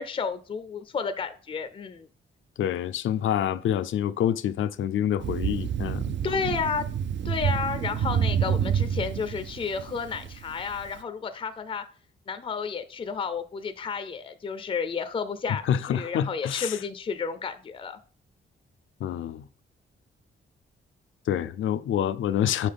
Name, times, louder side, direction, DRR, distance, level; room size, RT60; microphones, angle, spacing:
voice 1, 0.0-2.1 6.2-6.9 7.2-11.9 12.3-18.0, left 5 dB, 25° left, 0.5 m, -31 dB
voice 2, 2.6-6.2 15.6-16.8 19.0-19.5 21.3-22.7, left 10 dB, 75° left, 0.5 m, -27 dB
Thunder, 5.2-10.9, right 8 dB, 65° right, 0.5 m, -28 dB
5.9 x 5.7 x 3.4 m
wide cardioid pair, 155°, 20 cm